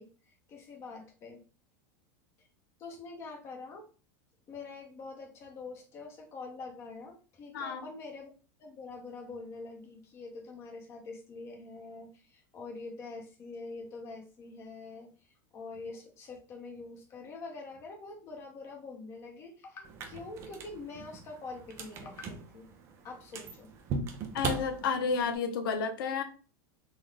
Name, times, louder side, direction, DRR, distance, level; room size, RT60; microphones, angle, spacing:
voice 1, 0.0-1.4 2.8-3.9 4.5-8.3 8.6-22.7 23.0-23.7, left 3 dB, 25° left, 2 dB, 0.6 m, -45 dB
voice 2, 7.5-7.8 24.3-26.2, left 5 dB, 90° left, 7 dB, 0.7 m, -31 dB
sound 1, 19.8-25.4, right 4 dB, 25° right, 0.4 m, -40 dB
3.8 x 2.0 x 3.3 m, 0.37 s
supercardioid pair, 175°, 11 cm